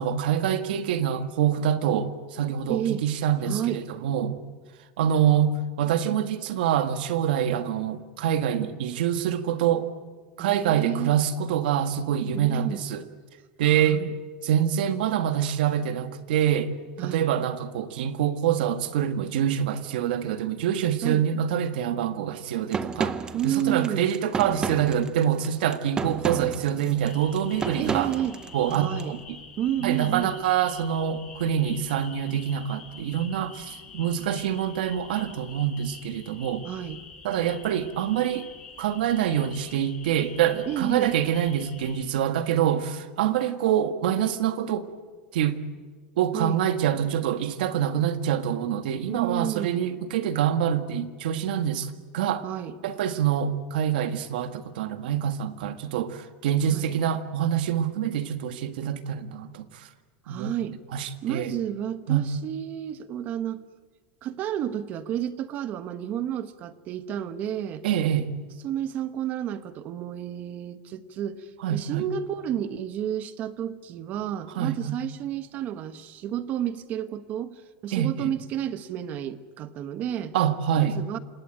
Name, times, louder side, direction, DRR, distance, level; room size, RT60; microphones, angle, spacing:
voice 1, 0.0-4.4 5.0-9.9 10.4-13.0 13.6-14.1 14.4-16.7 17.0-23.1 23.4-28.1 28.5-29.4 29.8-36.6 37.2-38.5 38.8-44.9 45.3-45.6 46.2-52.4 52.8-59.9 60.3-60.5 60.9-61.5 62.1-62.2 67.8-68.3 71.6-72.0 74.6-75.0 77.9-78.3 80.3-81.0, right 9 dB, 80° right, 9 dB, 1.8 m, -25 dB
voice 2, 2.7-3.0 3.4-3.8 10.4-11.1 12.3-12.8 13.7-14.1 17.0-17.3 21.0-21.2 23.3-24.1 27.8-28.4 28.7-29.2 29.6-30.3 36.6-37.0 40.7-41.1 46.3-46.6 49.1-49.8 52.4-52.7 56.7-56.9 60.2-60.8 61.2-63.6 64.2-67.8 68.6-80.3 80.8-81.2, right 10 dB, 35° right, 12 dB, 1.2 m, -31 dB
sound 1, 22.7-29.1, right 5 dB, 15° right, 0.8 m, -32 dB
sound 2, 27.0-42.0, left 5 dB, 15° left, 5.6 m, -46 dB
27.0 x 19.5 x 8.9 m, 1.5 s
supercardioid pair, 165°, 5 cm